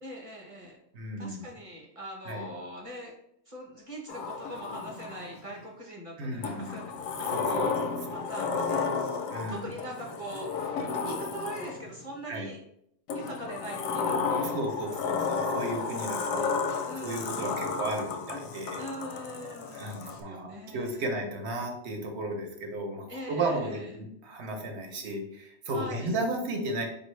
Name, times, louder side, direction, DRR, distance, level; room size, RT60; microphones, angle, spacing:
voice 1, 0.0-0.8 1.2-3.1 3.5-6.8 7.2-7.8 8.1-8.9 9.3-10.8 11.0-12.6 13.1-14.6 15.7-16.5 16.9-17.6 18.8-21.1 23.1-23.9 25.7-26.1, equal, 30° right, -1 dB, 0.7 m, -42 dB
voice 2, 0.9-1.5 2.3-2.5 6.2-6.9 7.2-8.3 9.3-9.7 12.3-12.5 14.4-16.5 17.0-18.8 19.7-26.9, right 2 dB, 60° right, 3 dB, 0.9 m, -34 dB
Sliding door, 4.1-5.5 6.4-12.0 13.1-20.2, left 5 dB, 85° left, 1.0 m, -32 dB
4.4 x 2.6 x 3.1 m, 0.75 s
omnidirectional pair, 1.4 m